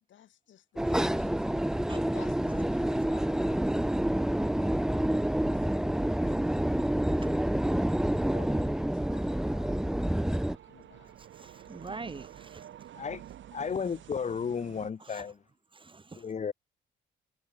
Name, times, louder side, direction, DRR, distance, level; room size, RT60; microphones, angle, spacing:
voice 1, 0.0-7.2 8.2-11.2, left 11 dB, 70° left, 5.9 m, -55 dB
sound 1, 0.8-10.6, right 1 dB, 5° right, 0.4 m, -28 dB
sound 2, 5.9-14.9, right 11 dB, 70° right, 6.6 m, -52 dB
voice 2, 11.3-12.7 15.0-15.2 15.7-16.3, right 3 dB, 25° right, 3.1 m, -44 dB
voice 3, 13.5-15.4 16.1-16.5, left 6 dB, 35° left, 1.1 m, -33 dB
cardioid pair, 90°, 20 cm